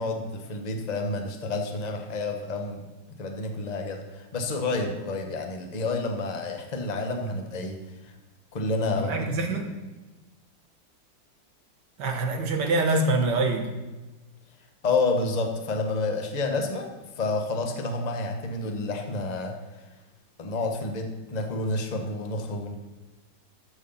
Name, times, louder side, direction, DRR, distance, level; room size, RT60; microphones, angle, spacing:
voice 1, 0.0-2.8 3.2-7.8 8.5-9.3 14.8-19.6 20.4-22.8, left 3 dB, 25° left, 4 dB, 1.0 m, -29 dB
voice 2, 9.0-9.7 12.0-13.7, right 2 dB, 65° right, 3 dB, 1.9 m, -25 dB
13.5 x 6.4 x 5.6 m, 1.2 s
omnidirectional pair, 2.1 m